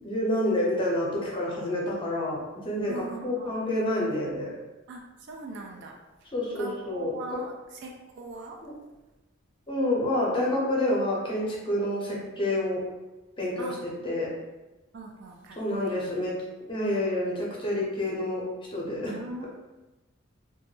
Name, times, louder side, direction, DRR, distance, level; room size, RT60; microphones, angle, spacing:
voice 1, 0.0-4.5 6.3-7.4 8.6-8.7 9.7-12.8 13.4-13.7 14.0-14.3 15.6-16.4 16.7-18.4 18.7-19.1, left 1 dB, 25° left, -4 dB, 0.6 m, -28 dB
voice 2, 2.9-3.5 4.9-5.9 6.6-8.6 13.6-13.8 14.9-16.1 19.1-19.5, right 2 dB, 60° right, 1 dB, 0.4 m, -41 dB
2.2 x 2.1 x 3.0 m, 1.1 s
head